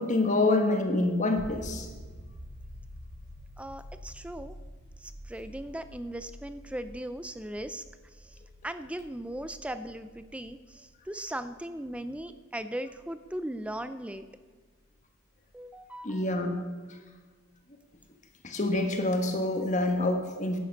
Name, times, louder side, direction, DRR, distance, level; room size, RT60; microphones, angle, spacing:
voice 1, 0.0-1.9 16.0-16.6 18.4-20.6, left 2 dB, 35° left, 4 dB, 1.2 m, -26 dB
sound 1, 1.4-14.9 17.6-17.7, equal, 55° right, 1.8 m, -48 dB
voice 2, 3.6-4.6 5.0-7.8 8.2-8.4 8.6-14.3 15.5-16.2, right 1 dB, 5° right, 11 dB, 0.4 m, -38 dB
11.0 x 8.4 x 5.3 m, 1.4 s
head